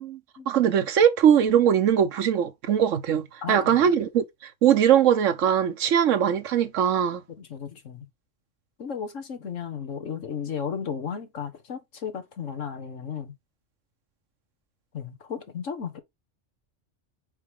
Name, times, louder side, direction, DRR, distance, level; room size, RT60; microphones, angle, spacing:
voice 1, 0.5-7.2, right 9 dB, 90° right, 1.2 m, -21 dB
voice 2, 3.4-3.9 7.4-8.1 8.8-13.3 14.9-16.0, left 7 dB, 85° left, 1.7 m, -34 dB
5.3 x 4.9 x 3.6 m
omnidirectional pair, 1.3 m